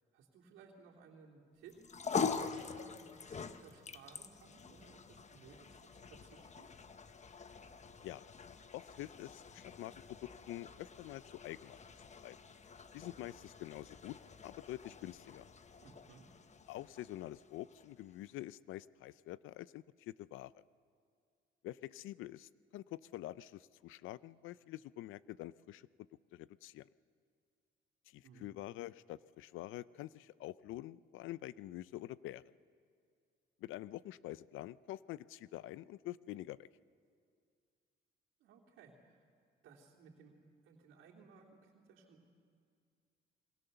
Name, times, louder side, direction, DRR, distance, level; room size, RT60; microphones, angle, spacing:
voice 1, 0.1-6.7 15.8-16.3 28.2-28.5 38.4-39.2 39.6-40.3 40.6-42.3, right 5 dB, 90° right, -1 dB, 3.2 m, -60 dB
sound 1, 1.7-18.2, left 5 dB, 35° left, 1.1 m, -45 dB
voice 2, 8.7-12.4 12.9-15.5 16.7-20.6 21.6-26.9 28.1-32.5 33.6-36.7, left 15 dB, 90° left, 18 dB, 0.5 m, -47 dB
27.0 x 22.0 x 6.9 m, 2.2 s
cardioid pair, 90°, 20 cm